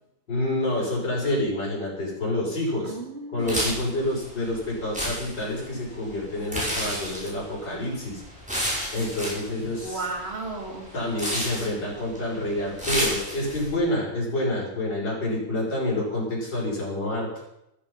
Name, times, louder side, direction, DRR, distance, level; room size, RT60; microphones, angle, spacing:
voice 1, 0.3-3.0 3.3-8.2 8.9-10.0 10.9-17.3, left 1 dB, 70° left, -5 dB, 6.7 m, -28 dB
voice 2, 2.8-3.7 9.7-10.9, right 3 dB, 35° right, 2 dB, 2.5 m, -34 dB
sound 1, 3.4-13.7, equal, 5° right, 5.8 m, -32 dB
14.0 x 13.5 x 5.6 m, 0.83 s
omnidirectional pair, 2.0 m